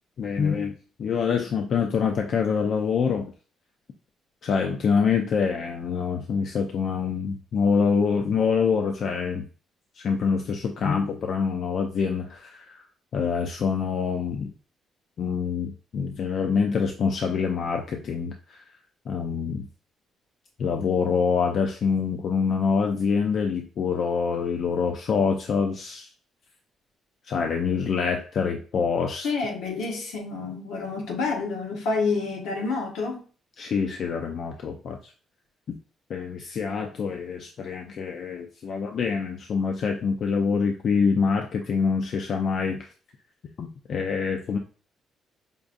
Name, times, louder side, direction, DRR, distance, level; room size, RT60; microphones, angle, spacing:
voice 1, 0.2-0.7 1.0-3.3 4.4-9.5 10.0-12.8 13.1-14.5 15.2-18.6 19.1-19.7 20.6-26.1 27.2-29.3 33.6-35.1 36.1-42.9 43.6-44.6, left 5 dB, 60° left, 0.4 m, -25 dB
voice 2, 29.2-33.3, left 4 dB, 85° left, 1.1 m, -28 dB
5.1 x 2.3 x 2.5 m
cardioid pair, 90°, 0 cm